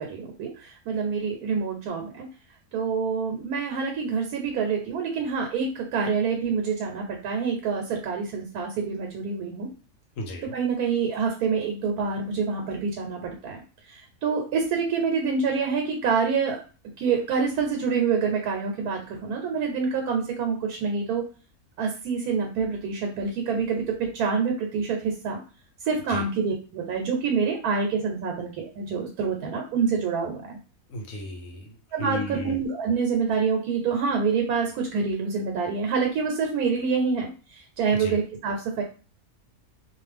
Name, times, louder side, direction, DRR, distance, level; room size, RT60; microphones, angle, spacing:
voice 1, 0.0-2.3 2.7-9.7 10.5-13.6 13.9-16.6 17.0-21.2 21.8-25.4 25.8-30.6 31.9-38.8, right 5 dB, 85° right, 2 dB, 1.2 m, -27 dB
voice 2, 10.2-10.5 26.1-26.3 30.9-32.6 37.9-38.2, left 1 dB, 65° left, 4 dB, 1.0 m, -34 dB
2.5 x 2.3 x 3.3 m, 0.35 s
omnidirectional pair, 1.6 m